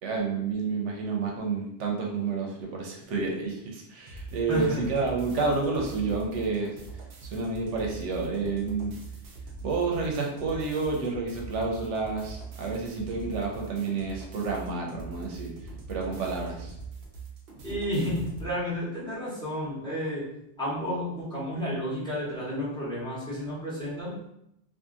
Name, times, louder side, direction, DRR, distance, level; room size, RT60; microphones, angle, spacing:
voice 1, 0.0-8.9 9.6-16.7, right 4 dB, 90° right, -1 dB, 0.9 m, -30 dB
sound 1, 4.1-18.5, right 4 dB, 60° right, 0.8 m, -42 dB
voice 2, 4.5-4.8 17.6-20.3 20.6-24.2, equal, 5° left, -10 dB, 1.0 m, -31 dB
2.7 x 2.4 x 2.4 m, 0.78 s
omnidirectional pair, 1.2 m